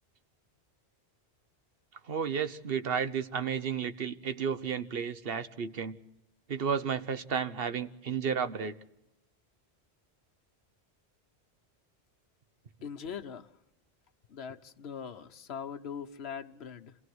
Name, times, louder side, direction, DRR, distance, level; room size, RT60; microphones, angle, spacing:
voice 1, 2.1-6.0 6.5-8.8, right 7 dB, 60° right, 1.2 m, -32 dB
voice 2, 12.8-13.5 14.3-17.0, left 7 dB, 70° left, 1.2 m, -41 dB
27.0 x 16.5 x 7.9 m
omnidirectional pair, 1.1 m